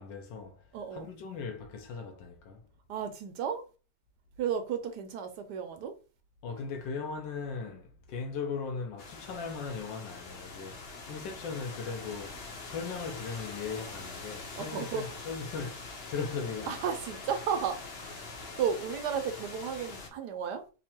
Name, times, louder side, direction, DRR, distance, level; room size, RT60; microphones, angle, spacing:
voice 1, 0.0-2.7 6.4-16.9, left 5 dB, 80° left, 1.4 m, -38 dB
voice 2, 0.7-1.1 2.9-3.6 4.4-6.0 14.6-15.1 16.7-17.8 18.1-20.6, right 7 dB, 70° right, 1.1 m, -33 dB
sound 1, 9.0-20.1, left 3 dB, 65° left, 0.6 m, -44 dB
3.6 x 2.0 x 4.3 m
omnidirectional pair, 2.0 m